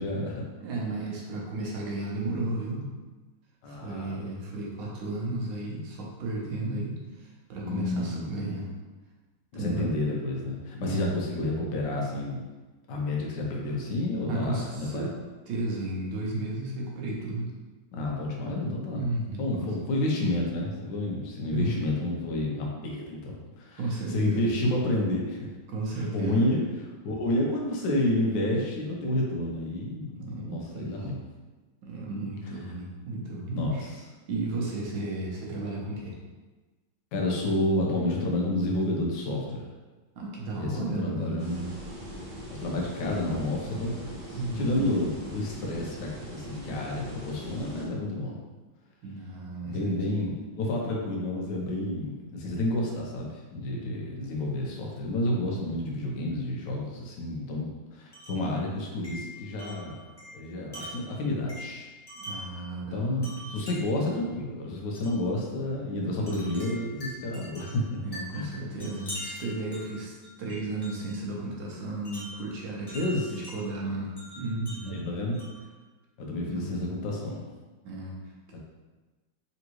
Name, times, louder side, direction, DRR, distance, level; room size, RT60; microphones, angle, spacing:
voice 1, 0.0-0.5 3.6-4.2 7.6-8.2 9.5-12.4 12.9-15.1 17.9-19.1 19.4-25.5 25.9-26.6 27.0-31.2 33.5-33.9 37.1-39.7 40.5-41.6 42.6-48.4 49.7-60.0 60.3-61.9 62.9-68.0 68.3-68.5 72.9-73.3 74.9-75.4 76.2-77.5 78.5-78.6, left 1 dB, 70° left, -2 dB, 1.4 m, -30 dB
voice 2, 0.6-2.9 3.7-8.7 9.5-9.9 10.8-11.1 14.3-15.1 15.5-17.5 18.9-19.7 21.5-21.8 23.8-24.5 25.7-26.4 30.2-30.9 31.8-33.9 34.3-36.2 40.2-41.7 44.3-44.9 49.0-50.0 62.2-63.6 68.0-73.0 73.3-75.0 76.4-76.7 77.8-78.2, right 2 dB, 70° right, -3 dB, 1.5 m, -34 dB
sound 1, 41.4-47.9, equal, 35° right, 0.7 m, -41 dB
Wind chime, 58.1-58.5 59.0-62.6 63.2-64.0 64.9-65.2 66.3-71.2 72.0-73.6 74.2-75.7, equal, 35° left, 0.4 m, -43 dB
3.9 x 3.5 x 3.0 m, 1.3 s
omnidirectional pair, 2.2 m